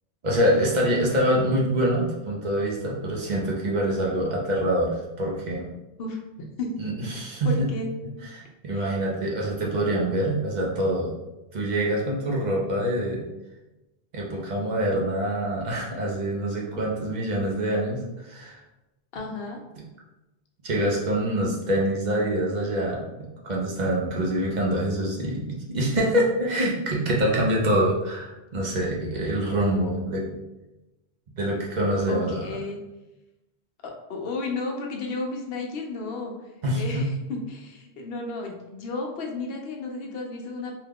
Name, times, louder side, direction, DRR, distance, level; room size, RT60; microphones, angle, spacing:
voice 1, 0.2-5.7 6.8-7.7 8.3-11.1 11.5-13.3 14.1-18.6 19.8-19.9 20.6-30.2 31.4-32.5 36.6-37.1, right 1 dB, 50° right, -2 dB, 0.7 m, -25 dB
voice 2, 7.4-7.9 8.7-8.9 19.1-19.6 32.1-32.8 33.8-36.3 36.7-40.7, left 3 dB, 65° left, 1 dB, 0.8 m, -33 dB
2.8 x 2.3 x 3.4 m, 1.0 s
omnidirectional pair, 1.1 m